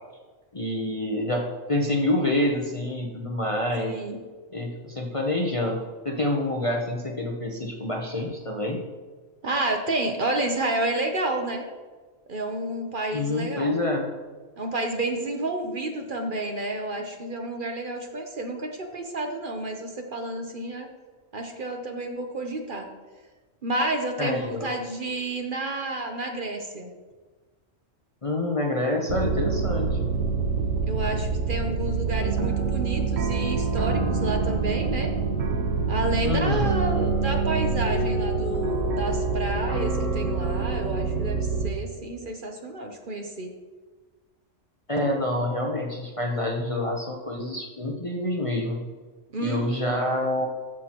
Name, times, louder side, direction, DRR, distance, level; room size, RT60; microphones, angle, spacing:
voice 1, 0.5-3.9 4.5-5.8 6.0-8.8 13.1-14.1 24.2-24.7 28.2-30.0 36.2-36.7 44.9-48.8 49.4-50.5, left 1 dB, 30° left, 0 dB, 0.7 m, -27 dB
voice 2, 3.8-4.2 9.4-11.6 12.3-13.8 14.6-20.9 21.3-22.9 23.6-26.9 30.9-35.1 35.9-43.5 49.3-49.9, right 2 dB, 45° right, 3 dB, 0.9 m, -30 dB
sound 1, 29.1-41.7, right 4 dB, 90° right, 1.4 m, -26 dB
13.5 x 6.1 x 2.9 m, 1.3 s
omnidirectional pair, 1.3 m